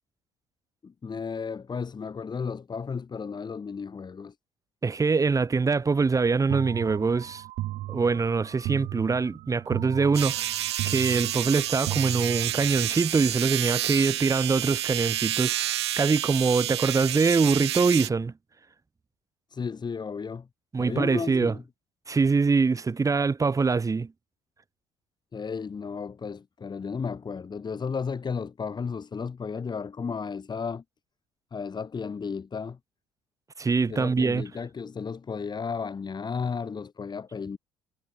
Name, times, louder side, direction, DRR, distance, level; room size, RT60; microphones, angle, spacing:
voice 1, 0.8-4.3 19.5-20.5 20.8-21.6 25.3-30.8 31.5-32.8 33.9-37.6, left 5 dB, 30° left, 5.0 m, -33 dB
voice 2, 4.8-7.4 7.9-10.5 10.8-15.5 16.0-18.3 20.7-21.5 22.1-24.1 33.6-34.4, right 4 dB, 25° right, 2.0 m, -24 dB
sound 1, 6.5-12.9, right 16 dB, 55° right, 1.5 m, -36 dB
sound 2, 10.1-18.1, right 13 dB, 80° right, 0.4 m, -29 dB
figure-of-eight pair, 55°, 14 cm